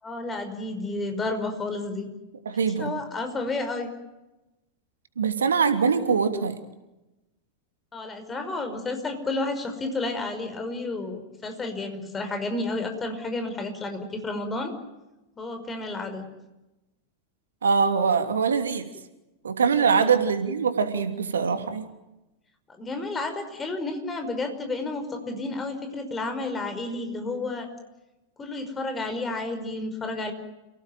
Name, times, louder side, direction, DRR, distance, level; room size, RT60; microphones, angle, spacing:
voice 1, 0.0-2.1 2.8-3.9 7.9-14.7 15.4-16.3 19.9-20.2 22.7-27.7 28.4-30.3, left 2 dB, 15° left, 7 dB, 5.5 m, -31 dB
voice 2, 2.4-2.9 5.2-6.6 17.6-18.9 19.4-21.9, right 5 dB, 70° right, 8 dB, 3.0 m, -23 dB
29.5 x 18.0 x 9.2 m, 1.0 s
figure-of-eight pair, 90°, 0 cm